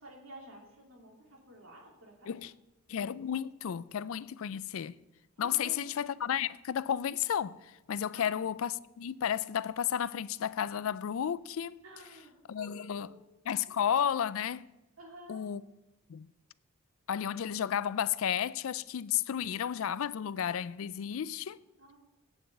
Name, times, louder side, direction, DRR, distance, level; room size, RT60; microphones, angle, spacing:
voice 1, 0.0-2.4 5.4-5.9 8.1-8.3 11.8-13.3 15.0-15.4 21.8-22.0, right 1 dB, 65° right, 3.1 m, -52 dB
voice 2, 2.9-4.9 5.4-11.8 12.5-13.1 13.5-14.7 15.3-15.6 16.1-16.3 17.1-21.6, left 9 dB, 65° left, 0.4 m, -32 dB
9.1 x 7.9 x 7.7 m
head